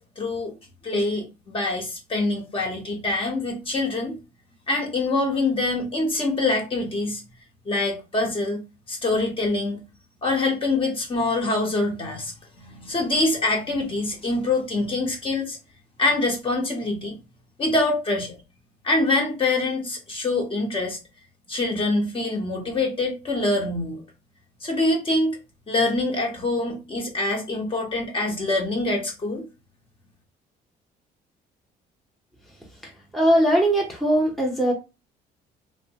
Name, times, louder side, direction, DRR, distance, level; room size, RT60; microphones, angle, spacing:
voice 1, 0.2-0.5 0.8-4.1 4.7-7.2 7.7-8.6 8.9-9.8 10.2-15.6 16.0-17.1 17.6-18.4 18.8-21.0 21.5-24.0 24.6-25.3 25.7-29.4, left 2 dB, 30° left, 0 dB, 1.0 m, -25 dB
voice 2, 32.8-34.7, right 1 dB, ahead, -2 dB, 0.8 m, -21 dB
2.9 x 2.1 x 2.8 m, 0.29 s
cardioid pair, 110°, 17 cm